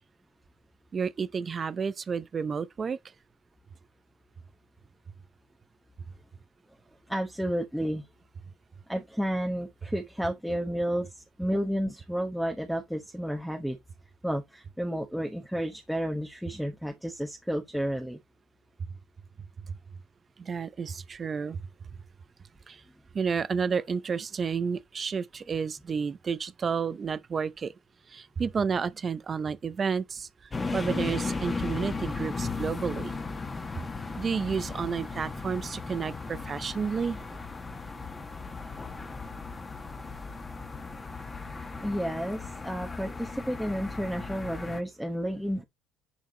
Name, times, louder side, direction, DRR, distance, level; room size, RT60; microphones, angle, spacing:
voice 1, 0.9-3.0 20.4-21.6 22.7-22.8 23.1-27.7 28.1-30.3 30.7-33.1 34.2-37.2, right 6 dB, 25° right, 0.7 m, -31 dB
voice 2, 7.1-8.0 8.9-13.8 14.2-18.2 41.8-45.6, equal, ahead, 1.1 m, -31 dB
sound 1, 30.5-44.8, left 4 dB, 15° left, 1.5 m, -36 dB
10.5 x 4.7 x 4.0 m
cardioid pair, 150°, 0 cm